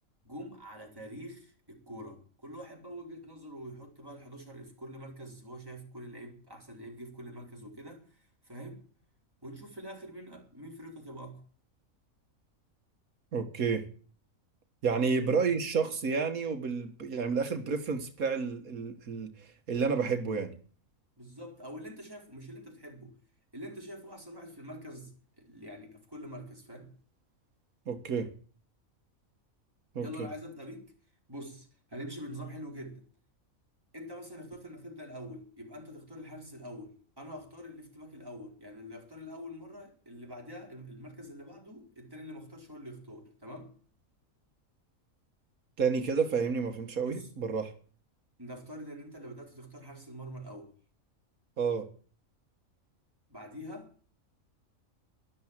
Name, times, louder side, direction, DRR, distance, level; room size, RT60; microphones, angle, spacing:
voice 1, 0.2-8.8 9.4-11.4 14.9-15.2 21.2-23.1 23.5-26.9 30.0-30.9 31.3-33.0 33.9-43.7 47.0-47.3 48.4-50.7 53.3-53.9, equal, 15° right, 4.5 m, -45 dB
voice 2, 13.3-13.9 14.8-20.5 27.9-28.3 30.0-30.3 45.8-47.7 51.6-51.9, right 5 dB, 85° right, 1.9 m, -30 dB
12.5 x 12.0 x 7.4 m
omnidirectional pair, 1.4 m